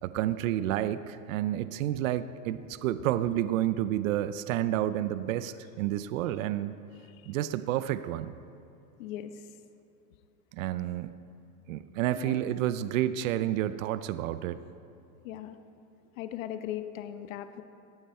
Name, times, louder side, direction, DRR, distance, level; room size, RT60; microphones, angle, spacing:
voice 1, 0.0-6.8 7.3-8.3 10.5-11.1 11.7-14.6, right 12 dB, 60° right, 13 dB, 0.7 m, -30 dB
voice 2, 9.0-9.6 12.1-12.4 15.2-15.6 16.1-17.6, left 11 dB, 60° left, 9 dB, 1.0 m, -39 dB
19.0 x 14.0 x 4.4 m, 2.6 s
supercardioid pair, 155°, 44 cm